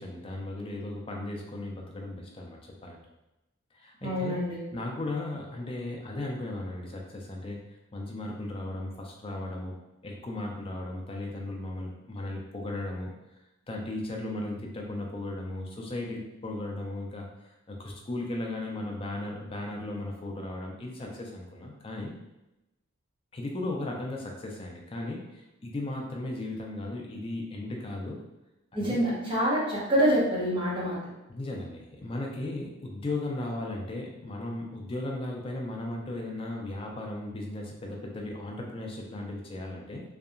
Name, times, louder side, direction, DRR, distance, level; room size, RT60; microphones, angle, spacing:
voice 1, 0.0-3.0 3.7-4.4 4.7-7.7 7.9-9.7 10.0-13.1 13.7-22.1 23.3-28.2 28.8-29.0 31.3-40.0, left 2 dB, 25° left, 0 dB, 0.3 m, -36 dB
voice 2, 4.0-4.6 28.7-31.0, equal, 25° right, -7 dB, 0.7 m, -26 dB
2.7 x 2.2 x 2.4 m, 0.95 s
head